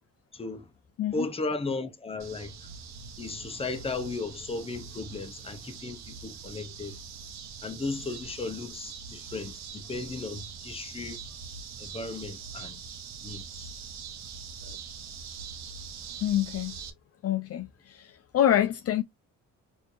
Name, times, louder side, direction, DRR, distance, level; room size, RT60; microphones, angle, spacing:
voice 1, 0.3-0.7 1.1-2.7 3.2-7.0 7.6-11.2 11.8-12.8 13.2-13.7 14.6-14.8, left 3 dB, 20° left, 0.7 m, -35 dB
sound 1, 2.2-16.9, right 6 dB, 60° right, 0.8 m, -43 dB
voice 2, 16.2-16.8 17.2-19.0, left 11 dB, 55° left, 0.5 m, -26 dB
4.3 x 2.8 x 2.5 m
cardioid pair, 90°, 30 cm